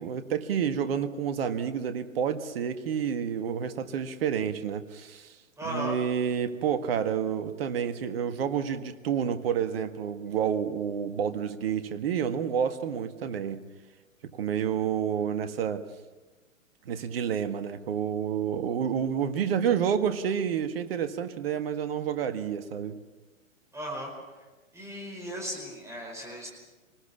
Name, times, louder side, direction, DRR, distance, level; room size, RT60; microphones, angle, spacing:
voice 1, 0.0-5.3 5.6-13.6 14.3-15.8 16.8-23.0, right 8 dB, 45° right, 10 dB, 1.7 m, -29 dB
voice 2, 5.6-6.0 23.7-24.1 24.7-26.5, equal, 5° right, 0 dB, 4.9 m, -36 dB
26.5 x 20.0 x 7.1 m, 1.2 s
figure-of-eight pair, 120°, 40 cm